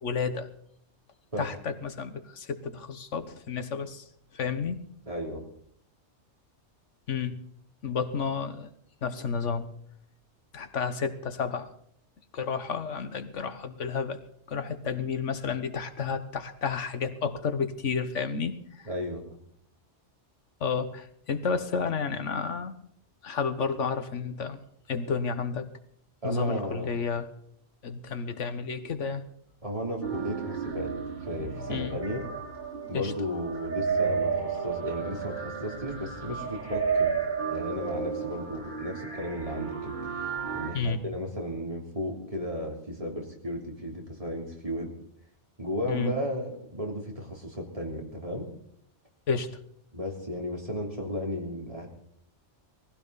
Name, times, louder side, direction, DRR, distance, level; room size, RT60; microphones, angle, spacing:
voice 1, 0.0-0.5 1.4-4.1 4.3-4.8 7.1-7.4 7.8-8.7 9.0-9.7 10.5-11.7 12.3-14.2 14.5-18.9 20.6-22.8 23.2-24.6 24.9-25.7 26.2-27.3 27.8-29.2 31.7-32.0 32.9-33.1 40.7-41.0 45.9-46.1 49.3-49.5, left 5 dB, 90° left, 10 dB, 1.5 m, -31 dB
voice 2, 5.1-5.4 18.9-19.2 26.2-26.9 29.6-30.9 31.2-32.3 32.9-37.2 37.5-39.9 40.5-44.9 45.6-48.5 49.9-51.9, equal, 30° right, 0 dB, 3.5 m, -34 dB
sound 1, 30.0-40.7, right 6 dB, 50° right, 6.7 m, -32 dB
20.0 x 15.5 x 4.1 m, 0.67 s
omnidirectional pair, 1.2 m